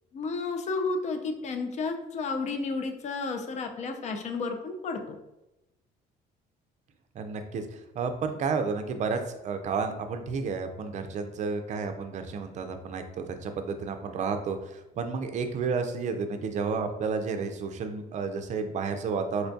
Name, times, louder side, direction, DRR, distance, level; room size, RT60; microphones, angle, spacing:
voice 1, 0.1-5.2, left 4 dB, 45° left, 6 dB, 0.5 m, -32 dB
voice 2, 7.1-19.5, right 5 dB, 45° right, 7 dB, 0.4 m, -31 dB
4.3 x 2.2 x 2.6 m, 0.94 s
cardioid pair, 110°, 17 cm